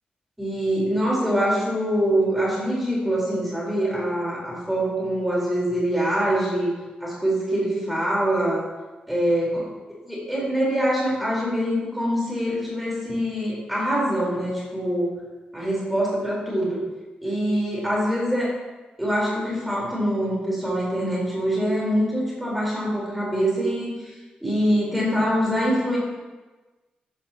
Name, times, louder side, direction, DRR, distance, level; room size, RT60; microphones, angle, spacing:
voice 1, 0.4-6.7 7.0-8.6 9.1-9.6 10.1-15.1 15.5-16.8 17.2-18.5 19.0-23.9 24.4-26.0, equal, 5° right, -5 dB, 4.3 m, -24 dB
14.0 x 12.0 x 3.0 m, 1.2 s
wide cardioid pair, 175°, 3 cm